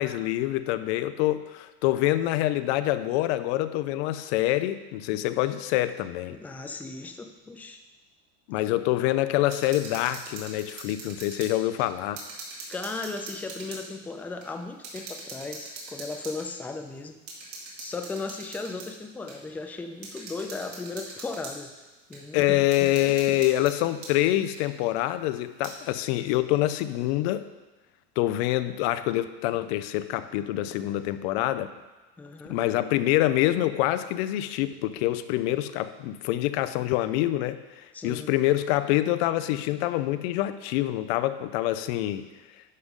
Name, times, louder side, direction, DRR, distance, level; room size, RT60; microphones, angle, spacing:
voice 1, 0.0-6.4 8.5-12.2 22.3-27.5 28.2-31.7 32.5-42.3, left 15 dB, 85° left, 12 dB, 0.5 m, -26 dB
voice 2, 6.3-7.8 12.7-17.2 17.4-21.7 22.1-23.0 23.3-23.4 32.2-32.6 37.9-38.3, left 3 dB, 5° left, 6 dB, 0.4 m, -37 dB
sound 1, 9.4-11.5 11.8-13.8 14.4-14.5 14.8-16.5 17.3-18.9 19.3-19.4 20.0-21.6 22.1-22.2 22.7-24.1 24.5-24.6 25.4-25.7, right 3 dB, 75° right, 2.4 m, -42 dB
11.0 x 5.2 x 3.6 m, 1.1 s
cardioid pair, 140°, 32 cm